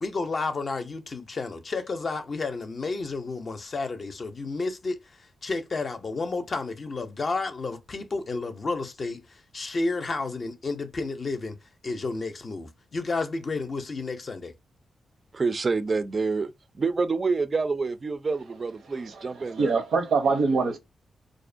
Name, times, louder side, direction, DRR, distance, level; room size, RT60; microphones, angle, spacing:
voice 1, 0.0-11.5 11.8-14.5, left 3 dB, 45° left, 0.5 m, -31 dB
voice 2, 15.3-16.5 16.8-19.7, right 4 dB, 40° right, 0.3 m, -27 dB
voice 3, 18.9-20.8, right 4 dB, 80° right, 0.6 m, -25 dB
2.5 x 2.1 x 2.5 m
cardioid pair, 80°, 0 cm